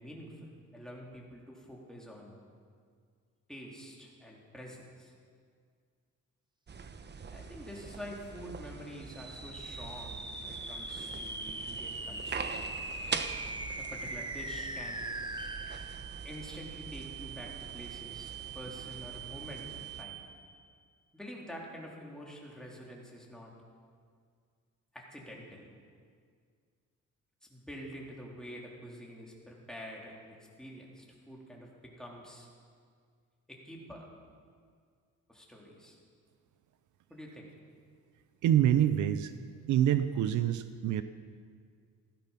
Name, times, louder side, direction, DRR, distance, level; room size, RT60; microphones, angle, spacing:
voice 1, 0.0-2.4 3.5-5.1 7.3-12.5 13.8-15.0 16.2-20.2 21.1-23.5 24.9-25.7 27.5-32.5 33.5-34.1 35.3-36.0 37.1-37.5, equal, ahead, -3 dB, 3.7 m, -47 dB
sound 1, 6.7-20.0, right 5 dB, 35° right, 1.0 m, -44 dB
sound 2, 9.1-20.6, right 3 dB, 15° right, 1.2 m, -42 dB
voice 2, 38.4-39.3 39.7-41.0, right 10 dB, 75° right, 12 dB, 0.7 m, -26 dB
16.5 x 13.0 x 5.9 m, 2.1 s
cardioid pair, 90°, 30 cm